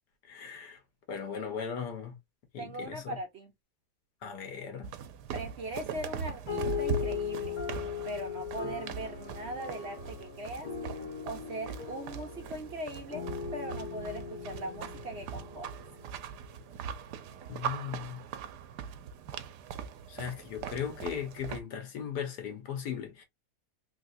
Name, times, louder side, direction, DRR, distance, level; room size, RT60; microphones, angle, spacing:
voice 1, 0.3-0.8 1.1-2.1 2.5-3.2 4.2-4.9 17.5-18.2 20.1-23.2, left 8 dB, 85° left, 1.7 m, -37 dB
voice 2, 2.6-3.5 5.3-7.6 8.0-10.7 11.3-13.2 13.5-15.7, right 1 dB, 55° right, 0.8 m, -40 dB
sound 1, 4.8-21.6, right 7 dB, 85° right, 1.2 m, -40 dB
sound 2, 6.5-16.2, left 8 dB, 65° left, 1.9 m, -39 dB
3.5 x 2.9 x 2.5 m
omnidirectional pair, 1.7 m